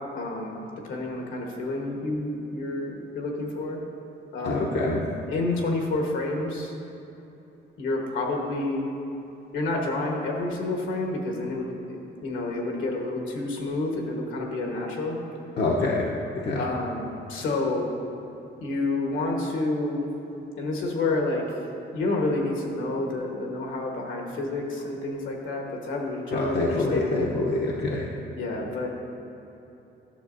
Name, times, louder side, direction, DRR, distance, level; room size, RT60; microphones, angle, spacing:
voice 1, 0.0-3.8 4.3-4.8 5.3-6.7 7.8-8.9 9.5-12.0 12.2-15.2 16.5-17.9 18.6-20.1 20.6-21.4 21.9-27.4 28.2-28.9, left 2 dB, 75° left, 0 dB, 1.3 m, -29 dB
voice 2, 4.4-5.0 15.6-16.1 16.4-16.6 26.3-28.0, left 2 dB, 60° left, -4 dB, 0.8 m, -25 dB
11.5 x 6.5 x 2.6 m, 3.0 s
cardioid pair, 90°, 20 cm